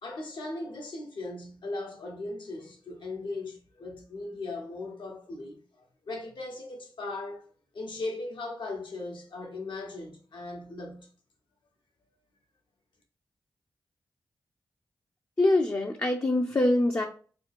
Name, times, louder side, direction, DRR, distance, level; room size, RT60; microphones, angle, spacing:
voice 1, 0.0-5.6 6.1-7.4 7.7-11.1, left 2 dB, 70° left, 1.1 m, -38 dB
voice 2, 15.4-17.1, left 1 dB, 30° left, 0.5 m, -24 dB
3.1 x 2.3 x 4.3 m
cardioid pair, 40°, 8 cm